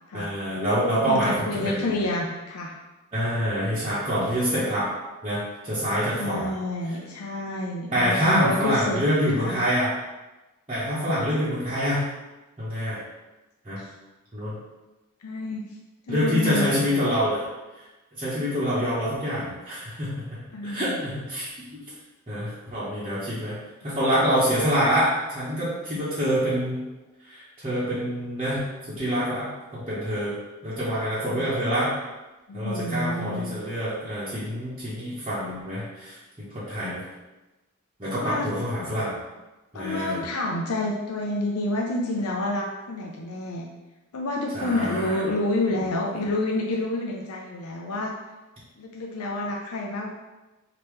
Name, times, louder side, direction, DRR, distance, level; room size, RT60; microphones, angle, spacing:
voice 1, 0.1-1.9 3.1-4.9 5.2-6.5 7.9-9.9 10.7-12.0 12.6-13.0 13.6-13.8 14.3-14.6 16.1-17.5 18.1-20.2 20.6-21.5 22.3-23.6 23.8-26.8 27.2-30.3 30.6-31.9 32.5-37.0 38.0-39.1 39.7-40.2 44.5-45.2 45.7-45.8 46.1-46.2, equal, 25° right, -12 dB, 1.1 m, -26 dB
voice 2, 0.9-2.8 6.1-9.0 9.3-9.6 13.8-13.9 15.2-15.6 16.1-16.9 20.5-21.0 31.2-31.6 32.5-33.6 38.1-38.5 39.7-43.7 44.1-48.1 48.8-50.1, left 2 dB, 80° left, -1 dB, 0.5 m, -29 dB
5.2 x 2.9 x 3.2 m, 1.1 s
head